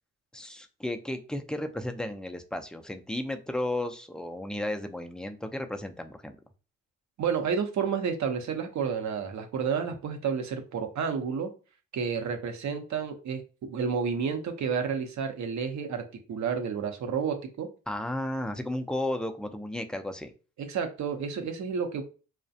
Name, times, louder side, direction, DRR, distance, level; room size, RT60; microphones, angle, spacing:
voice 1, 0.3-6.4 17.9-20.3, left 1 dB, ahead, 6 dB, 0.4 m, -34 dB
voice 2, 7.2-11.5 11.9-16.0 16.3-17.7 20.7-22.0, right 6 dB, 55° right, 5 dB, 0.7 m, -30 dB
2.3 x 2.1 x 2.6 m, 0.36 s
hypercardioid pair, 45°, 34 cm